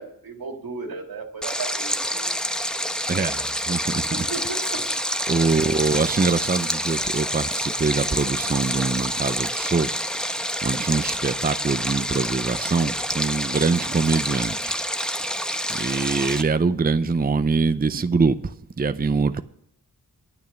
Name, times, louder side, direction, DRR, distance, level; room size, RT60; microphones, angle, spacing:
voice 1, 0.0-2.3 3.9-4.9 5.4-5.7, right 4 dB, 80° right, 2.2 m, -35 dB
Stream, 1.4-16.4, equal, ahead, 1.0 m, -27 dB
voice 2, 3.1-4.2 5.3-14.8 15.2-19.4, right 4 dB, 25° right, 0.6 m, -24 dB
9.4 x 9.2 x 7.1 m
cardioid pair, 45°, 35 cm